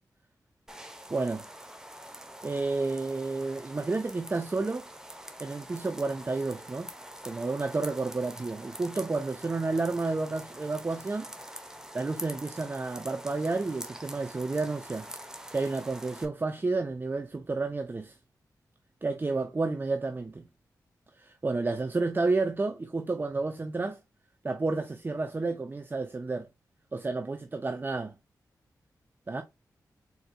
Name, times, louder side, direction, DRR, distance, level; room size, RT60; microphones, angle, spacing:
sound 1, 0.7-16.3, right 1 dB, 10° right, 0.9 m, -45 dB
voice 1, 1.1-1.4 2.4-4.8 5.4-6.9 7.2-11.3 11.9-15.1 15.5-18.2 19.0-20.4 21.2-24.0 24.4-26.5 26.9-28.1 29.3-29.4, right 3 dB, 30° right, 0.5 m, -31 dB
4.3 x 4.0 x 2.2 m
cardioid pair, 60°, 7 cm